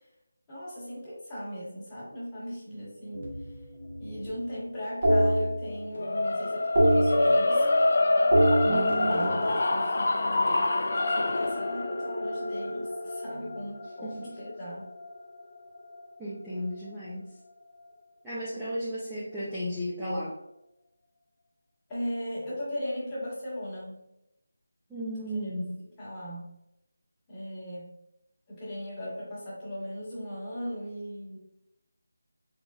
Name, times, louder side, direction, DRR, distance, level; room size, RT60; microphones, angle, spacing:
voice 1, 0.5-3.2 4.0-7.7 8.9-10.7 11.1-14.9 21.9-24.0 25.2-25.6 26.0-26.4 27.3-27.9 28.5-31.4, equal, 10° left, -10 dB, 1.4 m, -38 dB
sound 1, 3.1-4.4 5.0-6.2 6.5-7.9 8.2-10.5 11.7-13.5, equal, 45° right, 1.2 m, -27 dB
sound 2, 6.0-16.2, left 2 dB, 50° left, 0.4 m, -27 dB
voice 2, 8.6-9.3 14.0-14.3 16.2-17.3 18.2-20.3 24.9-25.8, equal, 5° right, -11 dB, 0.5 m, -34 dB
3.8 x 3.6 x 2.3 m, 0.85 s
figure-of-eight pair, 170°, 0 cm